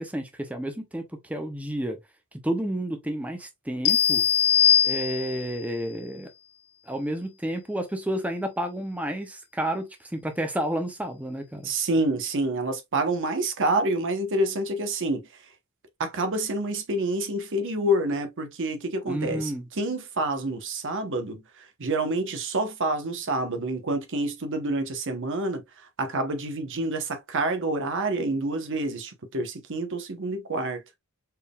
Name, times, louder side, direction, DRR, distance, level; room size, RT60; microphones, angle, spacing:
voice 1, 0.0-2.0 2.4-4.2 4.8-6.3 6.9-11.7 19.1-19.7, right 1 dB, 5° right, 0.6 m, -31 dB
sound 1, 3.9-5.6, left 9 dB, 80° left, 0.5 m, -21 dB
voice 2, 11.6-15.3 16.0-25.6 26.0-30.8, right 2 dB, 60° right, 0.9 m, -28 dB
4.5 x 3.6 x 2.3 m
head